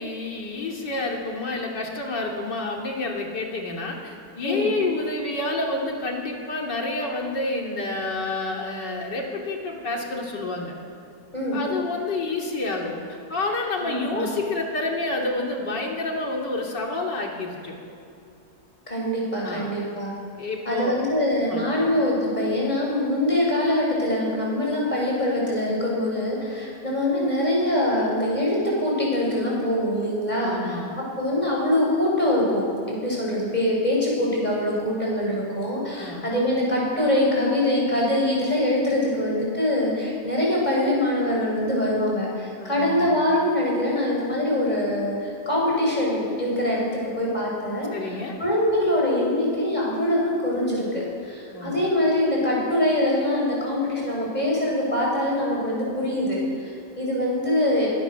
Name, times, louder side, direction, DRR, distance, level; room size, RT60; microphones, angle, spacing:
voice 1, 0.0-10.8 11.5-13.0 13.3-17.8 19.4-19.7 20.4-21.1 21.5-21.9 30.4-30.9 36.0-36.3 42.6-43.2 47.9-48.4 51.5-51.8, left 2 dB, 85° left, 0 dB, 3.5 m, -29 dB
voice 2, 11.3-11.6 13.8-14.3 18.9-20.1 20.6-30.8 31.2-46.8 47.2-57.9, left 1 dB, 25° left, -4 dB, 8.2 m, -24 dB
25.0 x 24.0 x 7.1 m, 2.5 s
omnidirectional pair, 1.8 m